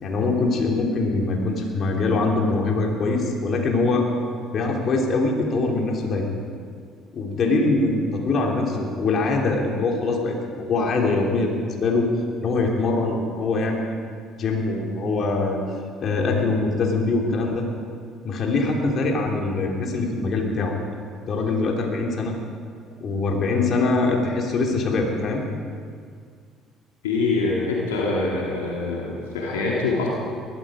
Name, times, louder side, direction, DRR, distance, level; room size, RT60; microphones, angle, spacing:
voice 1, 0.0-4.1 4.5-6.3 7.1-12.1 12.4-13.9 14.4-15.6 16.0-17.7 18.2-20.8 21.3-22.3 23.0-25.4, left 3 dB, 50° left, 0 dB, 3.1 m, -23 dB
voice 2, 27.0-30.1, left 3 dB, 85° left, -3 dB, 2.5 m, -24 dB
20.0 x 13.5 x 5.1 m, 2.1 s
hypercardioid pair, 60°, 0 cm